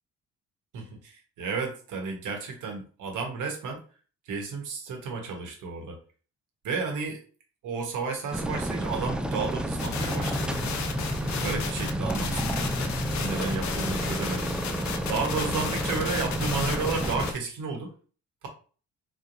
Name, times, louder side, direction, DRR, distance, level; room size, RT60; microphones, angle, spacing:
voice 1, 0.7-3.8 4.3-6.0 6.6-7.2 7.6-10.7 11.2-12.6 13.2-14.5 15.1-17.9, right 4 dB, 85° right, 3 dB, 1.2 m, -32 dB
sound 1, 8.3-17.3, equal, 5° right, 0.3 m, -30 dB
sound 2, 9.8-17.4, left 7 dB, 65° left, 0.6 m, -35 dB
4.0 x 3.0 x 2.6 m, 0.39 s
cardioid pair, 90°, 30 cm